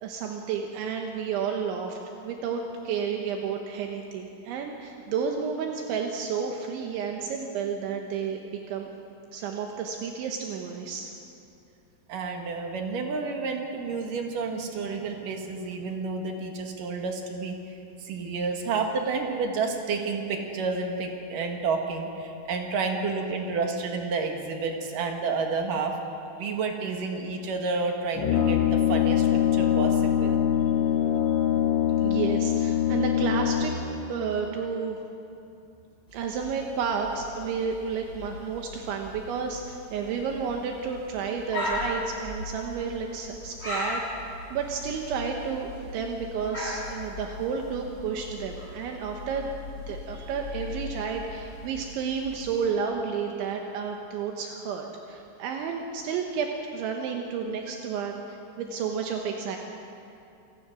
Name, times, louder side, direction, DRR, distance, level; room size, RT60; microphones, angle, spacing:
voice 1, 0.0-8.9 9.3-11.1 32.0-33.7 34.1-35.0 36.1-49.5 49.9-59.6, right 6 dB, 75° right, 2 dB, 3.4 m, -31 dB
voice 2, 12.1-26.0 26.4-29.3 29.5-30.4 30.8-30.9 50.1-50.4 50.7-50.8, right 4 dB, 55° right, 3 dB, 2.7 m, -30 dB
Brass instrument, 28.1-33.9, left 10 dB, 60° left, 1.9 m, -23 dB
sound 1, 36.1-52.7, left 2 dB, 15° left, 3.8 m, -38 dB
28.0 x 18.0 x 6.2 m, 2.7 s
omnidirectional pair, 5.6 m